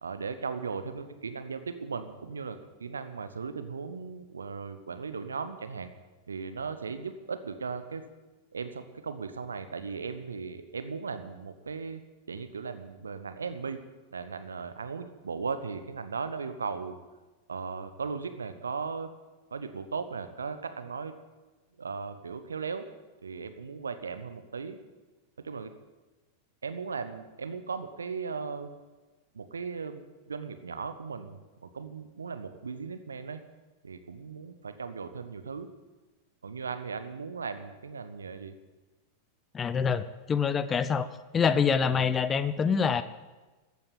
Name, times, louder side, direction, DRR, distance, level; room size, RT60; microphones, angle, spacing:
voice 1, 0.0-5.9 6.3-8.0 8.5-12.0 12.3-13.8 14.1-17.0 17.5-19.1 19.5-21.1 21.8-22.8 23.2-24.8 25.4-25.7 26.6-28.7 29.3-33.4 33.8-35.7 36.4-38.6, right 5 dB, 75° right, 10 dB, 1.1 m, -37 dB
voice 2, 39.5-41.1 41.3-43.0, left 6 dB, 20° left, 15 dB, 0.7 m, -26 dB
14.0 x 8.8 x 8.6 m, 1.2 s
figure-of-eight pair, 90°, 0 cm